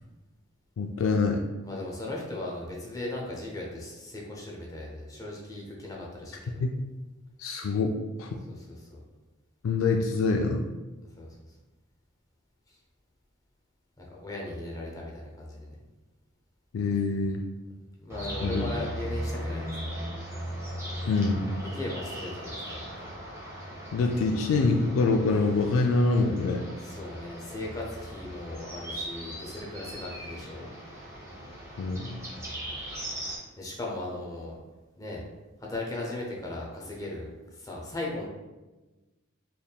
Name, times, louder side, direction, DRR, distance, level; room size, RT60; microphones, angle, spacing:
voice 1, 0.8-1.4 6.6-6.7 7.4-8.4 9.6-10.6 16.7-17.4 18.4-18.6 21.1-21.4 23.9-26.7 31.8-32.2, left 3 dB, 75° left, 3 dB, 0.3 m, -25 dB
voice 2, 1.6-6.6 8.5-9.0 11.2-11.3 12.7-12.8 14.0-15.8 18.0-19.9 21.7-22.9 26.8-30.7 32.3-32.8 33.6-34.6 35.0-35.2 35.6-38.3, left 2 dB, 15° left, -3 dB, 0.7 m, -37 dB
sound 1, 18.1-33.4, equal, 15° right, 0.9 m, -38 dB
4.1 x 3.5 x 2.3 m, 1.1 s
head